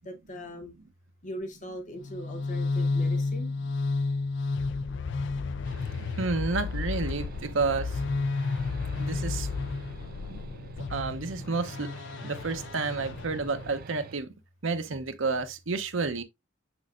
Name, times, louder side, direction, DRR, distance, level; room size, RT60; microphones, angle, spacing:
voice 1, 0.0-0.7 1.2-3.5, equal, 40° left, 1.0 m, -40 dB
sound 1, 2.0-13.9, left 3 dB, 65° left, 0.4 m, -32 dB
sound 2, 5.6-14.2, right 5 dB, 45° right, 0.4 m, -46 dB
voice 2, 6.2-8.0 9.0-9.5 10.3-10.4 10.9-11.9 12.2-14.3 14.6-16.2, right 4 dB, 75° right, 0.8 m, -30 dB
6.3 x 6.1 x 2.4 m
head